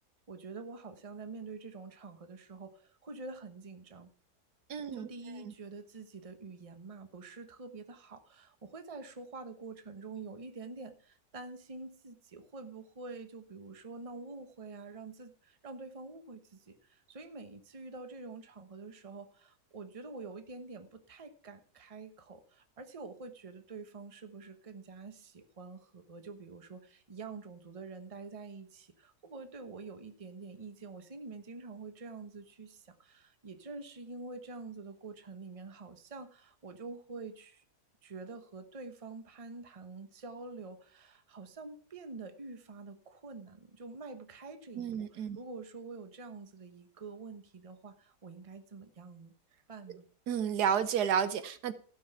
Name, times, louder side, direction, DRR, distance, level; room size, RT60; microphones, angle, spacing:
voice 1, 0.3-4.1 4.9-37.6 38.0-49.3 49.7-50.1, right 3 dB, 25° right, 9 dB, 1.0 m, -47 dB
voice 2, 4.7-5.1 5.4-5.5 44.7-45.4 50.3-51.7, right 8 dB, 80° right, 12 dB, 1.4 m, -31 dB
15.5 x 6.2 x 5.7 m, 0.43 s
omnidirectional pair, 1.7 m